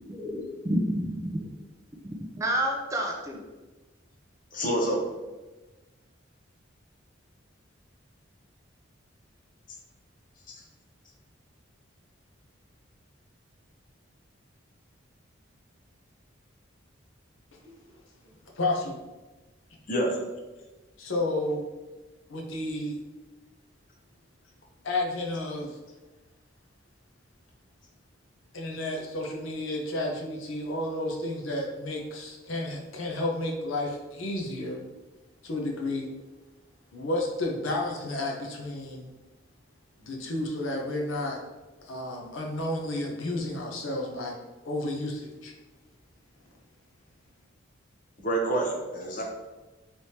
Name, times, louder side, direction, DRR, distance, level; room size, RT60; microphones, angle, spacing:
voice 1, 0.2-1.5 2.4-3.4, right 1 dB, 15° right, 1 dB, 0.3 m, -29 dB
voice 2, 4.5-5.1 10.5-10.6 19.9-20.2 48.2-49.2, right 1 dB, 40° left, 0 dB, 0.7 m, -27 dB
voice 3, 18.5-19.0 21.0-21.6 22.3-23.0 24.8-25.8 28.5-34.8 35.4-36.1 36.9-39.1 40.0-41.4 41.8-44.3 44.6-45.5, left 1 dB, 80° left, 0 dB, 0.7 m, -31 dB
3.4 x 3.1 x 2.7 m, 1.2 s
head